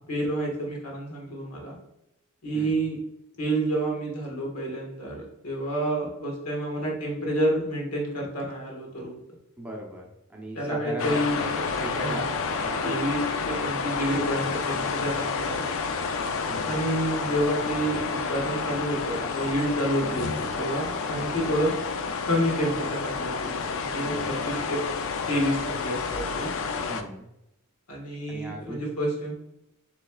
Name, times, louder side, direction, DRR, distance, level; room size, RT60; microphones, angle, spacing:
voice 1, 0.0-1.8 2.4-3.0 3.4-9.2 10.5-11.4 11.9-12.3 12.8-13.2 13.5-15.7 16.6-21.7 22.2-24.8 25.3-26.5 27.9-29.4, right 1 dB, 75° left, -1 dB, 1.5 m, -29 dB
voice 2, 9.6-11.5 11.8-12.2 12.5-12.7 16.5-16.8 20.0-20.3 21.1-21.5 24.0-24.6 26.9-27.3 28.3-28.9, right 1 dB, 5° right, -2 dB, 0.7 m, -38 dB
sound 1, 11.0-27.0, left 4 dB, 60° left, 0.4 m, -30 dB
6.3 x 3.2 x 2.3 m, 0.85 s
head